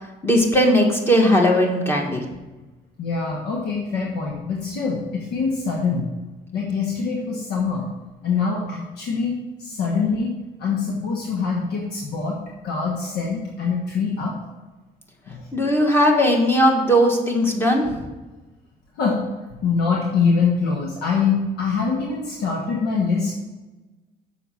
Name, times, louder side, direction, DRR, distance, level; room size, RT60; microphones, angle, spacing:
voice 1, 0.0-2.2 15.5-18.0, equal, 15° left, 1 dB, 1.6 m, -18 dB
voice 2, 3.0-6.0 6.5-7.9 8.2-10.3 10.6-14.4 15.3-15.5 19.0-19.2 19.6-23.3, left 5 dB, 75° left, -1 dB, 1.3 m, -24 dB
6.9 x 5.7 x 6.3 m, 1.2 s
cardioid pair, 110°, 17 cm